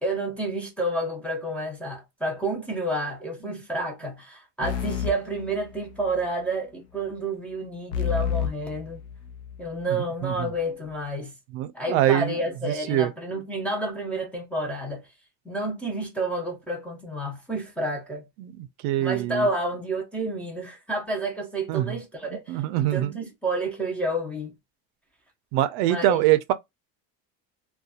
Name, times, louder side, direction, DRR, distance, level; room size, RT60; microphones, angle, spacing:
voice 1, 0.0-9.0 9.6-11.3 11.7-15.0 15.4-18.3 19.0-22.6 22.9-24.5 25.8-26.2, right 1 dB, 5° left, 0.5 m, -30 dB
sound 1, 4.6-6.2 7.9-9.7, left 8 dB, 85° left, 0.6 m, -30 dB
voice 2, 11.5-12.4 12.7-13.1 18.4-19.5 21.7-22.0 22.5-23.1 25.5-26.5, right 14 dB, 70° right, 0.5 m, -24 dB
2.7 x 2.3 x 2.3 m
cardioid pair, 165°, 38 cm